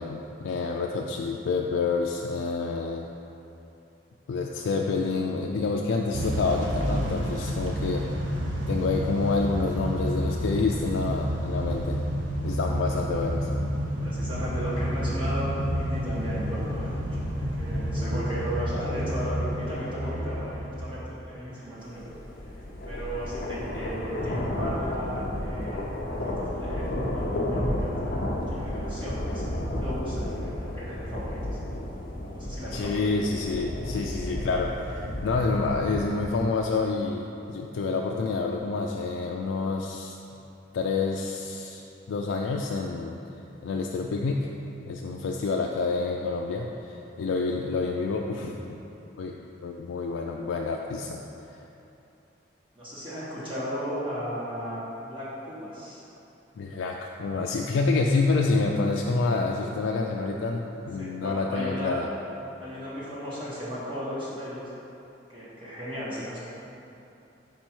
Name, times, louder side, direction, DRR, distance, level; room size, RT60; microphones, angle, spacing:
voice 1, 0.0-3.0 4.3-8.1 8.7-12.0 12.4-13.5 32.7-40.1 40.7-43.2 43.6-44.5 44.9-48.8 49.2-49.4 49.6-51.2 51.5-51.6 56.6-62.1, left 3 dB, 90° left, 0 dB, 0.3 m, -28 dB
Motor vehicle (road) / Engine starting / Accelerating revving vroom, 6.1-21.1, equal, 80° right, 0.7 m, -30 dB
voice 2, 14.0-22.0 22.8-25.9 26.2-31.6 32.3-33.0 52.7-56.0 61.0-62.0 62.6-64.6 65.3-66.4, equal, 25° right, -9 dB, 1.3 m, -35 dB
sound 1, 22.0-36.4, left 1 dB, 50° left, 0.6 m, -32 dB
5.2 x 4.5 x 4.4 m, 2.8 s
head